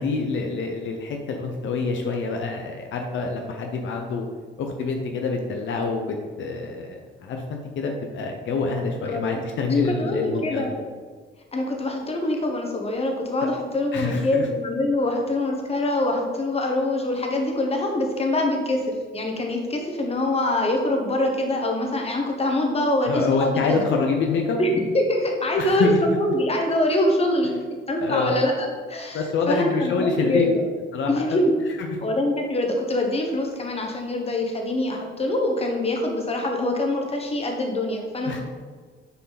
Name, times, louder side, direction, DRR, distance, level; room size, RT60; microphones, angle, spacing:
voice 1, 0.0-4.3 4.6-10.6 13.9-14.5 23.0-24.6 25.6-26.0 28.0-28.4 29.1-30.4 30.9-31.4 31.8-31.9 38.3-38.4, left 4 dB, 70° left, 3 dB, 0.8 m, -26 dB
voice 2, 9.0-9.4 9.7-10.8 11.5-23.9 24.6-27.5 27.9-30.6 31.1-31.5 32.0-38.4, left 1 dB, 30° left, 2 dB, 1.2 m, -24 dB
6.7 x 4.7 x 4.1 m, 1.5 s
cardioid pair, 90°, 20 cm